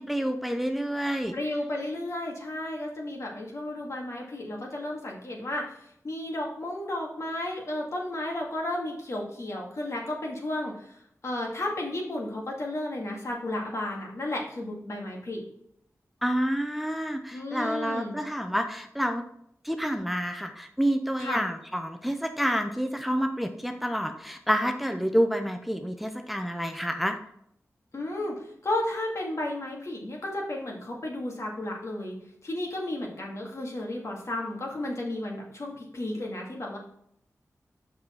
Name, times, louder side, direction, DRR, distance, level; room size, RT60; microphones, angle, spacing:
voice 1, 0.0-1.3 16.2-19.2 19.6-27.2, equal, ahead, 5 dB, 0.6 m, -28 dB
voice 2, 1.3-5.7 6.0-11.0 11.2-15.4 17.3-18.1 21.2-21.4 27.9-36.8, left 1 dB, 60° left, -1 dB, 2.0 m, -33 dB
6.3 x 5.5 x 4.4 m, 0.72 s
wide cardioid pair, 75°, 6 cm